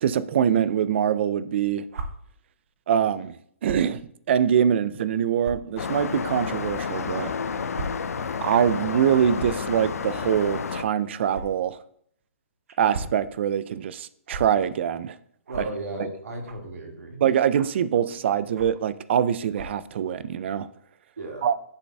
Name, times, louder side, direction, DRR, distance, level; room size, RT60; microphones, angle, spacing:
voice 1, 0.0-1.8 2.9-3.4 3.6-7.3 8.4-11.8 12.8-15.2 17.2-20.7 21.4-21.5, right 9 dB, 50° right, 0.4 m, -24 dB
sound 1, 1.9-2.1 3.6-3.9 4.6-4.7 5.4-5.5 6.6-6.7 7.7-7.9 8.2-8.3 9.3-9.6 11.3-11.4 12.7-13.2 14.3-14.4 15.5-15.7 16.4-16.7 17.5-17.8 18.5-18.8 19.5-19.8, right 3 dB, 65° right, 0.8 m, -36 dB
sound 2, 5.8-10.8, left 6 dB, 80° left, 0.5 m, -30 dB
voice 2, 15.5-17.2 21.2-21.5, right 1 dB, 90° right, 1.8 m, -35 dB
10.5 x 3.9 x 2.3 m
hypercardioid pair, 150°, 8 cm